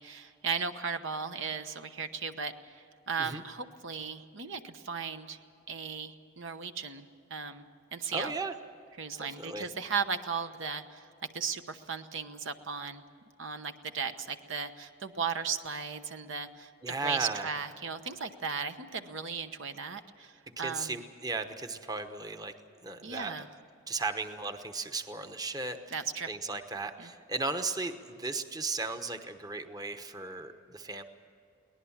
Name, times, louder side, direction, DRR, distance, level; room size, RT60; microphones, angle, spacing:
voice 1, 0.0-5.4 5.7-8.3 9.0-11.1 11.3-13.0 13.4-20.9 23.0-23.5 25.9-26.3 27.0-27.1, right 5 dB, 65° right, 8 dB, 1.0 m, -36 dB
voice 2, 8.1-8.5 9.2-9.7 16.8-17.5 20.6-22.5 22.8-23.3 23.9-26.0 26.3-31.0, right 3 dB, 20° right, 7 dB, 1.0 m, -36 dB
23.0 x 19.0 x 7.3 m, 2.6 s
head